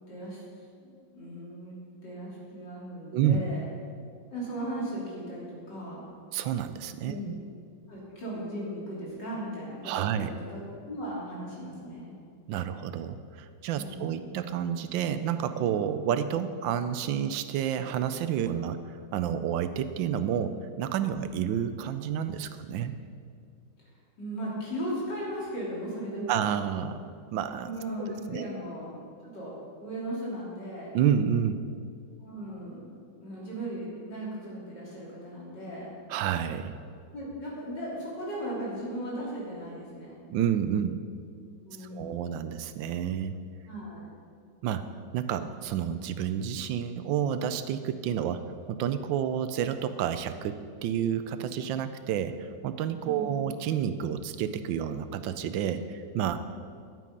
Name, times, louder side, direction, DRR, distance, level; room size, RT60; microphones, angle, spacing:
voice 1, 0.1-0.4 0.8-1.7 2.0-3.6 4.3-6.0 7.0-7.3 7.9-12.2 13.8-14.3 24.2-26.4 27.6-30.9 32.2-35.9 37.1-40.2 41.6-42.5 43.7-44.1 53.0-53.4, right 1 dB, 65° left, -6 dB, 3.8 m, -37 dB
voice 2, 6.3-7.4 9.8-10.3 12.5-22.9 26.3-27.7 28.3-28.5 30.9-31.7 36.1-36.8 40.3-41.0 41.8-43.4 44.6-44.9 45.1-56.4, right 9 dB, 85° right, 11 dB, 1.3 m, -30 dB
11.0 x 8.4 x 5.2 m, 2.3 s
omnidirectional pair, 2.0 m